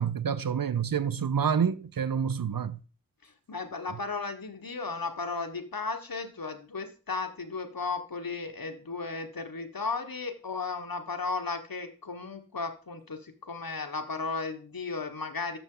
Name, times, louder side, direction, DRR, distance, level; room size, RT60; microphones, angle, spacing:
voice 1, 0.0-2.8, right 7 dB, 80° right, 0.6 m, -28 dB
voice 2, 3.2-15.6, left 4 dB, 85° left, 1.3 m, -35 dB
11.5 x 7.3 x 3.8 m
wide cardioid pair, 50°, 34 cm